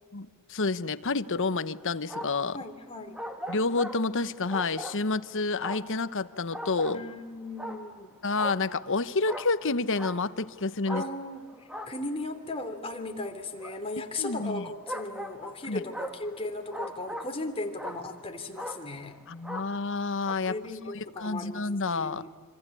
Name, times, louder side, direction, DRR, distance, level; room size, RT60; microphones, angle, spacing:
voice 1, 0.1-2.6 3.5-7.0 8.2-11.0 14.2-14.6 15.7-15.8 19.3-20.6 20.9-22.2, left 3 dB, 60° left, 13 dB, 1.1 m, -29 dB
sound 1, 1.7-2.6 3.1-5.3 5.6-7.2 7.6-8.1 8.4-10.5 10.9-12.7 13.6-13.8 14.9-17.5 17.8-18.3 18.5-19.1 19.4-20.0 20.3-20.4, equal, 5° right, 1.8 m, -40 dB
voice 2, 2.5-3.2 6.9-8.2 10.9-19.2 20.5-22.3, left 2 dB, 25° left, 5 dB, 3.1 m, -37 dB
27.0 x 25.5 x 8.5 m, 1.5 s
head